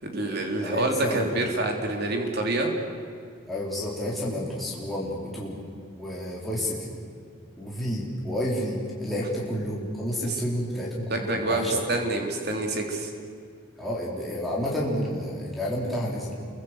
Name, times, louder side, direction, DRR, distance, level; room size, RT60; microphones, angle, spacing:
voice 1, 0.0-2.7 10.2-10.4 11.1-13.1, right 2 dB, 50° right, 2 dB, 3.6 m, -27 dB
voice 2, 0.6-1.3 3.5-5.6 5.9-6.9 7.6-11.8 13.8-16.4, equal, ahead, -6 dB, 4.3 m, -30 dB
29.0 x 23.5 x 8.2 m, 2.3 s
head